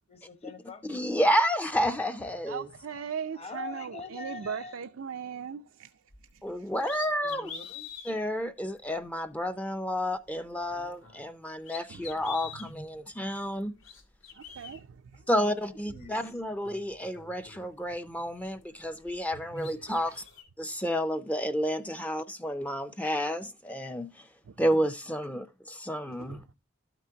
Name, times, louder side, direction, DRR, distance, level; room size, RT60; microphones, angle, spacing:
voice 1, 0.1-0.8 3.3-4.8 7.3-7.9 15.1-16.2, left 4 dB, 35° left, 1.0 m, -44 dB
voice 2, 0.9-2.7 6.4-7.5 8.1-13.7 15.3-20.2 20.6-24.1 24.6-26.4, equal, 5° left, 0.4 m, -30 dB
voice 3, 2.5-5.9 6.3-6.7 11.9-12.1 14.3-15.2 19.6-20.2 24.5-24.6 26.1-26.4, right 7 dB, 80° right, 0.5 m, -39 dB
sound 1, 6.1-6.3 6.8-8.1 8.8-8.9 10.6-11.3 11.6-12.7 13.6-14.8 15.9-16.0 16.4-18.1 18.5-19.3 19.5-20.4, left 7 dB, 75° left, 1.9 m, -46 dB
12.0 x 5.9 x 2.7 m
head